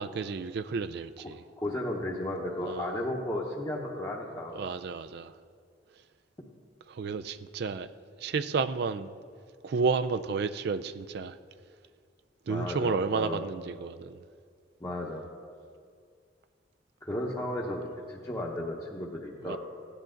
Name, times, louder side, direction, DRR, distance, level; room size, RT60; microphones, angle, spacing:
voice 1, 0.0-1.4 2.7-3.0 4.5-5.3 6.9-7.9 8.2-9.1 9.6-11.4 12.5-14.2 19.4-19.6, right 5 dB, 60° right, 12 dB, 0.4 m, -31 dB
voice 2, 1.6-4.6 12.5-13.4 14.8-15.3 17.0-19.6, left 1 dB, 20° left, -3 dB, 0.9 m, -34 dB
16.0 x 10.0 x 3.8 m, 2.2 s
head